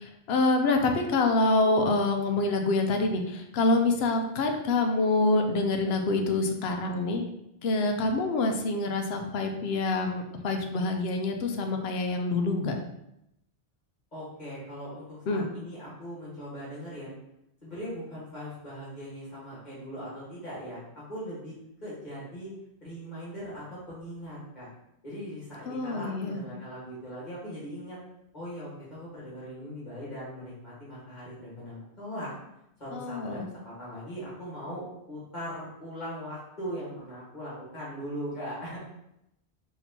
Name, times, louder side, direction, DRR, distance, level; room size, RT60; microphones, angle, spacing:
voice 1, 0.0-7.2 7.6-12.8 15.3-15.5 25.7-26.4 32.9-33.4, left 2 dB, 75° left, 4 dB, 0.8 m, -26 dB
voice 2, 14.1-17.1 17.6-21.5 21.8-22.5 22.8-24.7 25.0-28.0 28.3-32.3 32.8-38.8, equal, 45° left, -9 dB, 1.5 m, -40 dB
4.2 x 2.9 x 2.7 m, 0.82 s
omnidirectional pair, 1.1 m